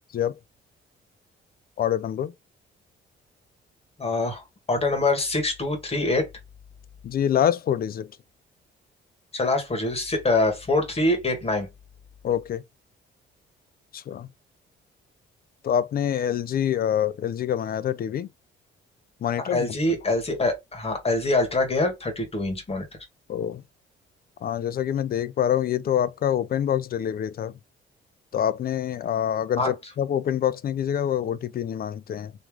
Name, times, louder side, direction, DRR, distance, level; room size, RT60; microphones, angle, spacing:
voice 1, 1.8-2.3 7.0-8.1 12.2-12.6 13.9-14.3 15.6-18.3 19.2-19.8 23.3-23.6 24.4-27.6 28.3-32.3, left 10 dB, 50° left, 0.5 m, -26 dB
voice 2, 4.0-6.3 9.3-11.7 19.5-22.8 29.6-29.7, left 2 dB, 30° left, 1.7 m, -24 dB
3.1 x 3.1 x 3.5 m
cardioid pair, 90°, 20 cm